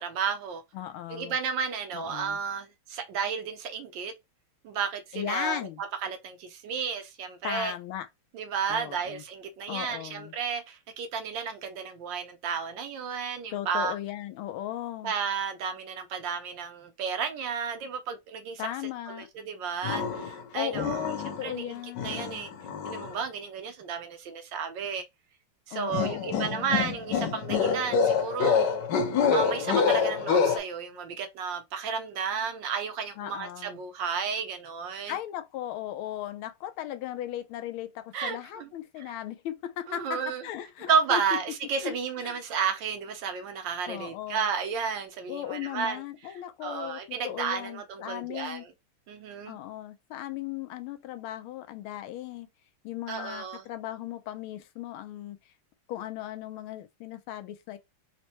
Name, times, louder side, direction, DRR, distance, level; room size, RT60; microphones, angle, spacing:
voice 1, 0.0-0.6 1.1-4.1 4.6-5.7 6.0-7.7 8.3-13.9 15.0-18.6 19.1-21.1 21.4-21.7 22.0-22.5 22.8-25.0 25.7-28.6 29.3-35.2 38.1-38.7 39.1-39.2 39.9-40.4 40.9-46.0 46.6-48.7 49.1-49.6 53.1-53.6, right 6 dB, 75° right, 1.2 m, -32 dB
voice 2, 0.7-1.3 1.9-2.4 5.1-5.8 7.4-8.1 8.7-9.2 9.7-10.3 13.5-15.1 18.6-19.3 20.5-22.5 25.7-27.0 33.2-33.8 35.1-41.4 41.8-41.9 42.2-42.4 43.9-44.5 45.3-48.6 49.5-52.5 52.8-55.4 55.9-57.8, left 12 dB, 90° left, 1.5 m, -37 dB
sound 1, 19.8-20.4 20.7-21.5 22.0-23.1 25.9-30.6, left 6 dB, 65° left, 1.3 m, -26 dB
4.2 x 2.2 x 2.8 m
omnidirectional pair, 2.3 m